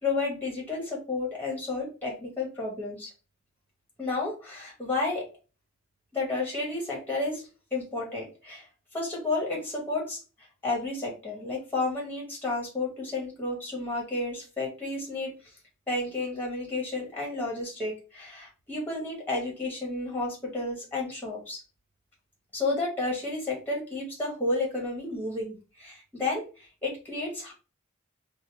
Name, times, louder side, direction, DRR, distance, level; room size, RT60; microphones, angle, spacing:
voice 1, 0.0-3.1 4.0-5.2 6.1-7.4 7.7-8.6 8.9-10.2 10.6-15.3 15.9-21.6 22.5-27.5, left 2 dB, 10° left, -3 dB, 1.4 m, -31 dB
4.0 x 2.2 x 3.3 m, 0.33 s
head